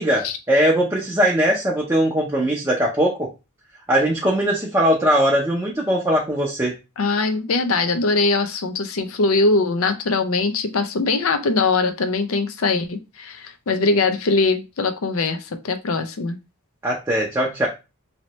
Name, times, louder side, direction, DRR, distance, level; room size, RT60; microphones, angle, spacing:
voice 1, 0.0-3.2 3.9-6.7 16.8-17.7, equal, 15° right, 0.5 m, -20 dB
voice 2, 7.0-16.4, left 3 dB, 70° left, 0.5 m, -21 dB
3.1 x 2.8 x 2.9 m
head